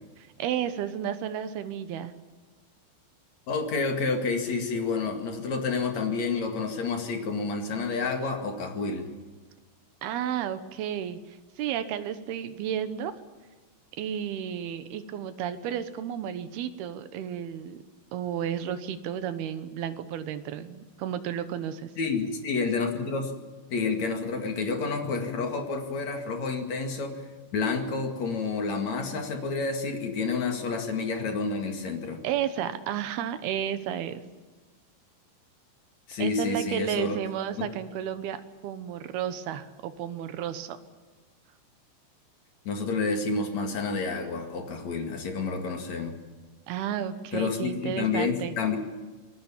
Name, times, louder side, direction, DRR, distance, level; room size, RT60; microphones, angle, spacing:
voice 1, 0.2-2.1 10.0-13.1 14.0-17.8 18.1-21.9 32.2-34.2 36.2-38.4 38.6-40.8 46.7-48.6, right 9 dB, 70° right, 11 dB, 2.6 m, -32 dB
voice 2, 3.5-9.1 22.0-23.3 23.7-27.2 27.5-32.2 36.1-37.2 42.6-46.1 47.3-48.8, left 4 dB, 45° left, 4 dB, 2.7 m, -29 dB
26.5 x 20.0 x 7.3 m, 1.3 s
omnidirectional pair, 5.5 m